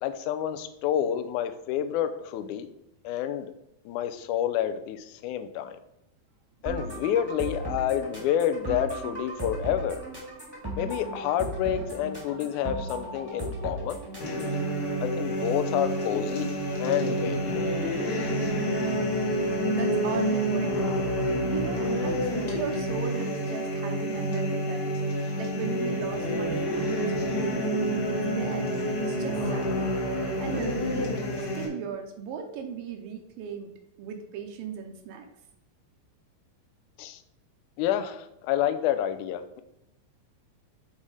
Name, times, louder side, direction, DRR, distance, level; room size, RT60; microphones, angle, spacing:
voice 1, 0.0-2.7 3.0-3.5 3.8-5.8 6.6-10.0 10.8-14.0 15.0-16.5 16.8-17.7 37.0-37.2 37.8-39.6, left 10 dB, 85° left, 9 dB, 1.7 m, -29 dB
sound 1, 6.6-14.6, right 1 dB, 15° right, 0.7 m, -36 dB
sound 2, 14.2-31.6, equal, 60° left, 1.1 m, -28 dB
voice 2, 18.8-21.0 21.4-24.9 25.4-26.9 27.2-27.7 28.1-30.1 30.4-31.1 31.6-33.7 34.0-35.3, right 7 dB, 80° right, 4 dB, 2.4 m, -37 dB
7.3 x 4.1 x 4.8 m, 0.85 s
omnidirectional pair, 4.1 m